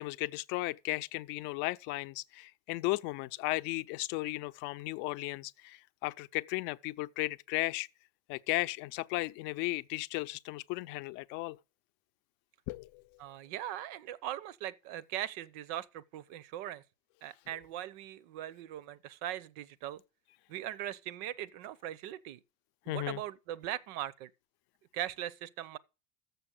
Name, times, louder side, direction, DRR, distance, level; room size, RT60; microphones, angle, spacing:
voice 1, 0.0-7.9 8.3-11.6 12.7-13.0 22.9-23.2, left 20 dB, 65° left, 0.5 m, -35 dB
voice 2, 13.2-16.8 17.2-20.0 20.5-22.4 22.9-24.3 24.9-25.8, right 12 dB, 80° right, 0.7 m, -40 dB
6.9 x 6.8 x 7.4 m
cardioid pair, 140°, 20 cm